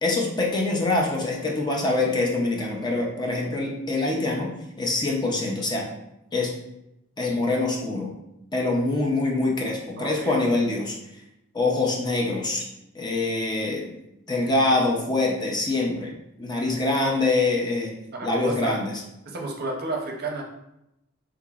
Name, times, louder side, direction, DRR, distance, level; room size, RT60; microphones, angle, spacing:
voice 1, 0.0-4.5 4.8-5.9 6.3-6.5 7.2-8.1 8.5-11.0 11.5-12.6 12.9-13.9 14.3-16.1 16.4-17.9 18.2-18.9, left 2 dB, 20° left, -1 dB, 0.5 m, -24 dB
voice 2, 10.0-10.3 18.1-18.8 19.3-20.4, right 2 dB, 50° right, 1 dB, 0.6 m, -31 dB
3.6 x 2.9 x 2.3 m, 0.85 s
head